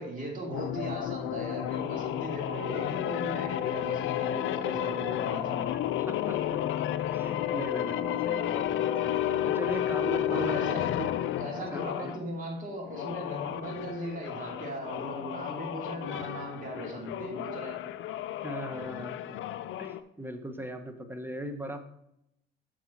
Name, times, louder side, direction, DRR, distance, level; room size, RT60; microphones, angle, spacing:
voice 1, 0.0-5.7 10.2-10.8 11.4-17.8, right 1 dB, 45° right, -1 dB, 2.7 m, -38 dB
sound 1, 0.5-12.2 12.9-20.0, left 11 dB, 75° left, 0.5 m, -32 dB
voice 2, 5.7-6.6 7.1-10.6 11.0-11.1 11.7-12.1 18.4-19.4 19.8-21.8, right 1 dB, 10° right, 7 dB, 1.0 m, -39 dB
6.3 x 5.6 x 4.5 m, 0.78 s
cardioid pair, 90°, 20 cm